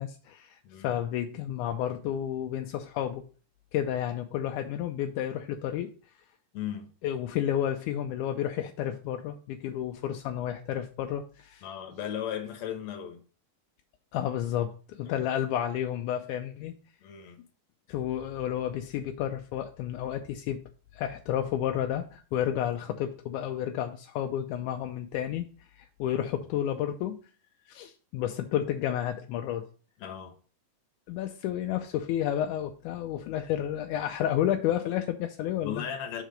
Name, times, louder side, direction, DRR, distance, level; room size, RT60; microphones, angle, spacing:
voice 1, 0.0-3.3 3.7-5.9 7.0-11.7 14.1-16.7 17.9-20.6 20.9-25.5 25.8-27.2 27.7-29.7 31.1-35.8, left 10 dB, 80° left, 1.8 m, -31 dB
voice 2, 0.6-1.0 6.5-6.9 11.6-13.2 15.1-15.3 17.0-17.4 30.0-30.3 35.6-36.2, left 9 dB, 60° left, 2.1 m, -36 dB
6.5 x 4.8 x 5.0 m
omnidirectional pair, 4.0 m